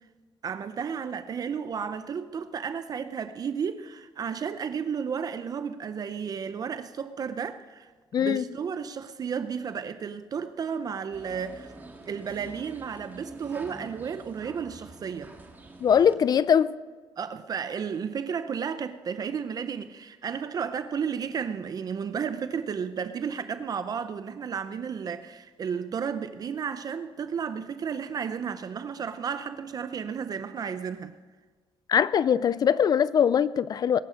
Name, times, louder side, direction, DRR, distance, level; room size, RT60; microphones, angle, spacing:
voice 1, 0.4-7.9 8.2-11.7 12.1-15.3 17.2-31.2, right 7 dB, 40° right, 0.6 m, -33 dB
voice 2, 8.1-8.4 15.8-16.7 31.9-34.0, left 8 dB, 45° left, 0.4 m, -22 dB
sound 1, 11.1-16.1, right 2 dB, 20° right, 1.9 m, -46 dB
21.0 x 11.5 x 5.1 m
cardioid pair, 140°, 9 cm